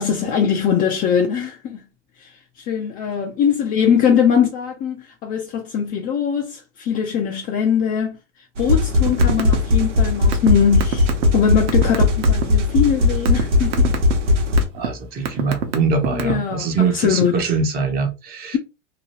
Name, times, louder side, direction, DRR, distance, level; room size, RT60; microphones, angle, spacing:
voice 1, 0.0-1.8 2.2-2.3 2.7-8.2 8.6-13.9 15.3-15.4 16.1-17.4, left 7 dB, 25° left, 0.4 m, -21 dB
sound 1, 8.6-14.6, left 2 dB, 90° right, 0.9 m, -18 dB
sound 2, 9.1-9.6 9.8-12.4 13.0-13.4 13.7-14.1 14.6-14.9 15.2-16.5, right 8 dB, 55° right, 0.9 m, -23 dB
voice 2, 14.7-18.6, right 5 dB, 25° right, 0.7 m, -22 dB
2.9 x 2.3 x 2.9 m
hypercardioid pair, 130°, 35 cm